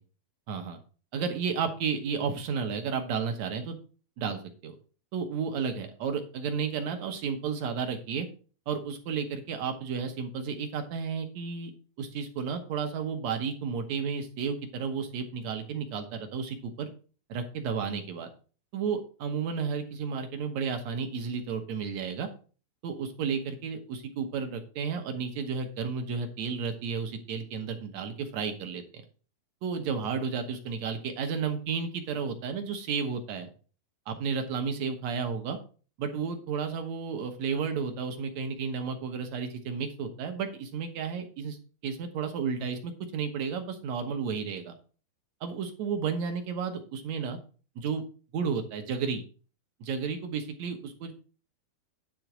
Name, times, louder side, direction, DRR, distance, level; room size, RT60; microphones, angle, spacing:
voice 1, 0.5-0.8 1.1-3.8 4.2-4.7 5.1-8.3 8.7-11.7 12.0-16.9 17.3-18.3 18.7-22.3 22.8-29.0 29.6-33.5 34.1-35.6 36.0-41.6 41.8-44.7 45.4-47.4 47.8-48.0 48.3-49.2 49.8-51.1, right 6 dB, 70° right, 5 dB, 1.7 m, -32 dB
10.5 x 3.8 x 5.9 m, 0.38 s
omnidirectional pair, 4.2 m